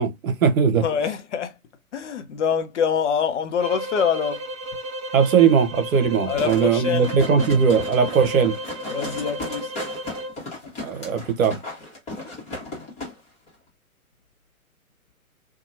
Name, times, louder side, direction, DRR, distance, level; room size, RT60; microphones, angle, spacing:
voice 1, 0.0-0.9 5.1-8.6 10.8-11.6, right 6 dB, 65° right, 0.8 m, -19 dB
voice 2, 0.8-1.5 1.9-4.4 6.2-7.1 8.9-9.7, left 7 dB, 55° left, 0.7 m, -25 dB
sound 1, 3.6-10.4, equal, 25° right, 0.4 m, -33 dB
sound 2, 6.4-13.1 13.5-13.6, left 2 dB, 15° left, 1.1 m, -35 dB
2.8 x 2.3 x 2.6 m
figure-of-eight pair, 125°, 44 cm